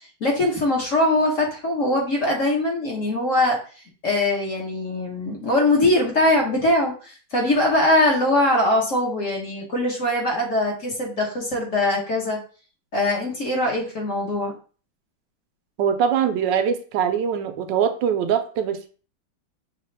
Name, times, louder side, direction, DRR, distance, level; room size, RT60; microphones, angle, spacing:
voice 1, 0.2-3.6 4.0-12.4 12.9-14.5, left 1 dB, 50° left, -1 dB, 1.1 m, -22 dB
voice 2, 15.8-18.9, right 8 dB, 75° right, 8 dB, 1.2 m, -22 dB
5.7 x 2.4 x 3.1 m, 0.39 s
omnidirectional pair, 2.1 m